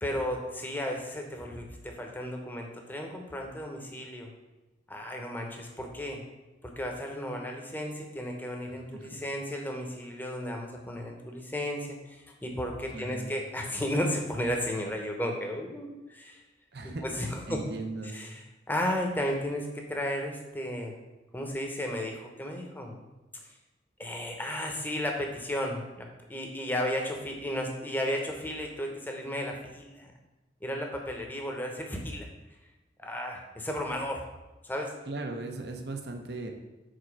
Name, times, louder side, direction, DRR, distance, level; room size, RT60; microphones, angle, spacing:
voice 1, 0.0-4.3 4.9-6.2 6.6-16.4 16.8-17.6 18.1-20.9 21.3-23.1 24.0-30.1 30.6-32.3 33.0-34.2 34.6-34.9, equal, 10° left, 1 dB, 0.9 m, -34 dB
voice 2, 12.9-13.3 16.7-17.0 17.5-18.2 35.1-36.5, right 2 dB, 60° right, 4 dB, 0.8 m, -37 dB
5.0 x 4.4 x 5.9 m, 1.1 s
head